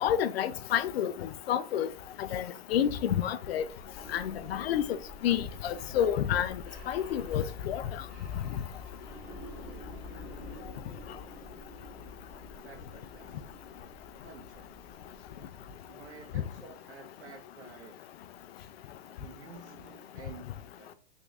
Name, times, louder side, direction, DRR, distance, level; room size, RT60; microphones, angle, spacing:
voice 1, 0.0-1.9 2.3-2.5 2.7-3.6 4.1-4.8 5.2-6.5 6.9-7.8, left 10 dB, 65° left, 0.5 m, -29 dB
sound 1, 3.6-16.3, left 3 dB, 10° right, 1.1 m, -47 dB
voice 2, 9.6-10.0 12.6-13.3 14.2-14.7 15.9-18.0 19.2-20.9, right 4 dB, 80° right, 1.5 m, -51 dB
3.5 x 2.6 x 3.3 m
hypercardioid pair, 160°, 33 cm